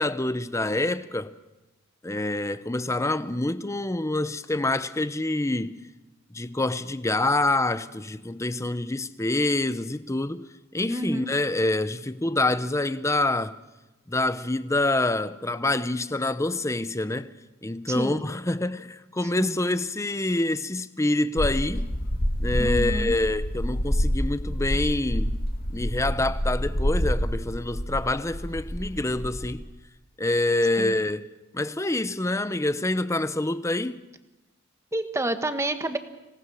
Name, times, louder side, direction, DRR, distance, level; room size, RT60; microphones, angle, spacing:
voice 1, 0.0-1.4 2.0-5.8 6.3-13.6 14.1-17.4 17.6-22.0 22.4-25.4 25.7-29.6 30.2-34.0, left 2 dB, 15° left, 0.7 m, -26 dB
voice 2, 10.9-11.3 17.9-18.2 19.4-19.5 22.6-23.1 30.8-31.0 34.9-36.0, right 1 dB, 15° right, 1.3 m, -29 dB
sound 1, 21.4-29.5, equal, 45° left, 2.1 m, -27 dB
26.0 x 18.0 x 6.3 m
head